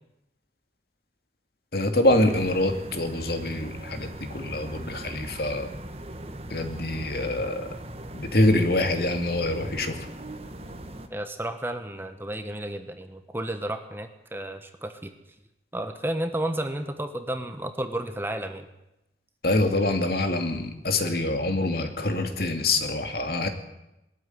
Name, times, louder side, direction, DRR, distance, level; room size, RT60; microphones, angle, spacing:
voice 1, 1.7-5.7 6.5-7.7 8.1-10.1 19.4-23.5, left 2 dB, 60° left, 6 dB, 2.4 m, -25 dB
sound 1, 2.1-11.1, right 1 dB, 35° right, 1.5 m, -40 dB
voice 2, 11.1-15.1 15.7-18.7, right 1 dB, 15° right, 8 dB, 1.2 m, -32 dB
21.0 x 13.5 x 9.4 m, 0.92 s
head